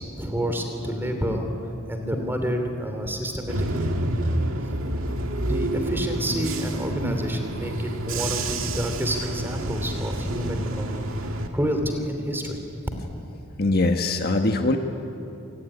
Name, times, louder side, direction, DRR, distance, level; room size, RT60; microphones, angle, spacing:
voice 1, 0.0-1.5 1.9-4.2 5.5-11.1 11.5-12.6, equal, 10° right, 5 dB, 3.0 m, -29 dB
Bus / Engine, 3.5-11.5, right 1 dB, 75° right, 2.1 m, -28 dB
voice 2, 13.6-14.8, left 2 dB, 50° left, 5 dB, 1.5 m, -22 dB
27.0 x 19.0 x 10.0 m, 2.8 s
head